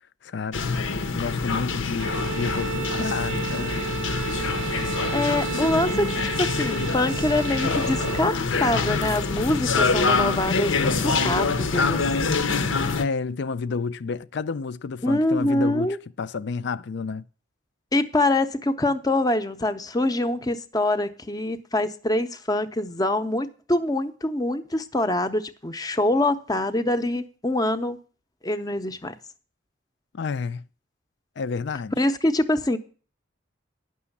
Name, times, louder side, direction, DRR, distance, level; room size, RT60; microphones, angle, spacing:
voice 1, 0.2-0.8 1.1-3.9 13.0-17.2 30.1-30.6 31.4-32.1, left 5 dB, 65° left, 0.4 m, -30 dB
sound 1, 0.5-13.0, left 4 dB, 85° left, 0.8 m, -25 dB
Bowed string instrument, 2.0-8.4, right 6 dB, 70° right, 0.5 m, -33 dB
voice 2, 4.8-12.4 15.0-16.0 17.9-28.0 28.4-29.1 32.0-32.8, left 1 dB, 20° left, 0.7 m, -25 dB
9.7 x 6.2 x 7.1 m
head